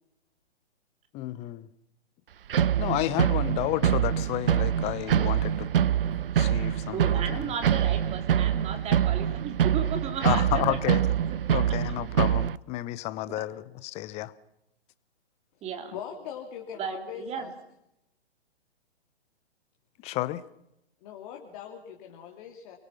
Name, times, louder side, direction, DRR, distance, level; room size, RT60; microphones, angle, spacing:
voice 1, 1.1-1.7 2.8-5.7 6.3-7.5 10.2-11.0 11.5-14.3 20.0-20.4, left 16 dB, 20° left, 18 dB, 0.8 m, -31 dB
sound 1, 2.5-12.6, right 10 dB, 55° right, 0.8 m, -25 dB
voice 2, 6.9-11.0 13.3-13.4 15.6-15.9 16.8-17.5, right 7 dB, 20° right, 6 dB, 3.1 m, -35 dB
voice 3, 15.9-17.5 21.0-22.7, left 8 dB, 35° left, 1 dB, 3.2 m, -41 dB
29.5 x 23.0 x 5.9 m, 0.82 s
figure-of-eight pair, 125°, 33 cm